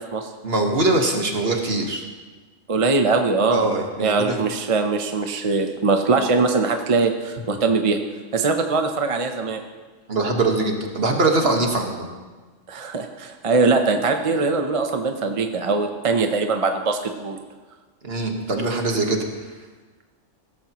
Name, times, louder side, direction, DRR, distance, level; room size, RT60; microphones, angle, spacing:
voice 1, 0.4-2.1 3.5-4.4 10.1-12.1 18.0-19.2, right 2 dB, 50° right, 2 dB, 1.6 m, -22 dB
voice 2, 2.7-3.7 4.0-8.0 8.3-9.6 12.7-17.4, right 3 dB, 35° right, 5 dB, 0.7 m, -21 dB
16.0 x 13.5 x 3.0 m, 1.4 s
omnidirectional pair, 1.3 m